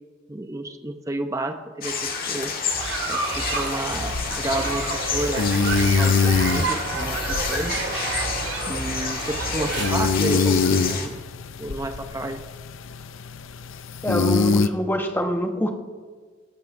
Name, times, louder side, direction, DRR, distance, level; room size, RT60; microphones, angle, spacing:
voice 1, 0.3-1.9 2.3-2.5 3.1-4.9 5.1-5.5 5.9-7.7 8.7-11.2 11.6-12.4, right 1 dB, 15° right, 6 dB, 0.7 m, -31 dB
sound 1, 1.8-11.1, left 6 dB, 50° left, 1.5 m, -30 dB
sound 2, 2.5-10.1, right 3 dB, 65° right, 2.0 m, -29 dB
sound 3, 3.9-14.7, left 4 dB, 80° left, 0.5 m, -25 dB
voice 2, 14.0-15.7, equal, 10° left, 4 dB, 1.1 m, -25 dB
23.5 x 8.8 x 2.6 m, 1.5 s
head